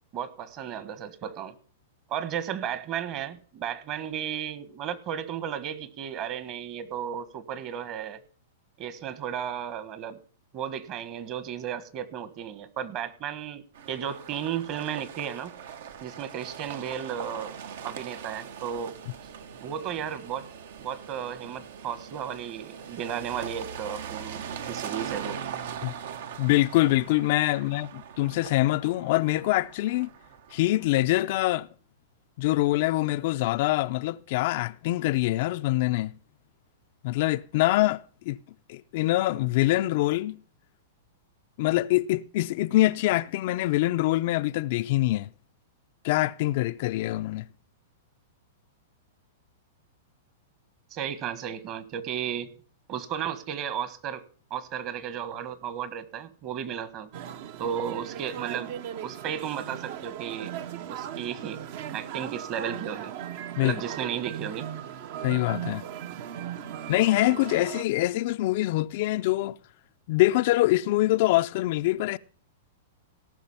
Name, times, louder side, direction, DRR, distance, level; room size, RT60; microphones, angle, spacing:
voice 1, 0.1-1.5 2.1-8.2 8.8-10.2 10.5-15.5 16.0-17.6 17.8-19.0 19.6-20.5 20.8-25.4 27.7-27.9 50.9-52.5 52.9-54.2 54.5-57.1 57.6-58.7 59.0-60.6 60.9-61.6 61.9-63.1 63.6-64.7, right 9 dB, 35° right, 1.3 m, -34 dB
sound 1, 13.7-30.7, right 8 dB, 70° right, 1.2 m, -41 dB
voice 2, 26.4-30.1 30.5-31.7 32.4-36.1 37.0-38.4 38.7-40.4 41.6-45.3 46.0-47.5 63.6-63.8 65.2-65.8 66.9-69.6 70.1-72.2, left 17 dB, 50° left, 0.5 m, -24 dB
sound 2, 57.1-67.8, right 10 dB, 55° right, 0.9 m, -38 dB
17.5 x 6.1 x 5.6 m
hypercardioid pair, 145°, 0 cm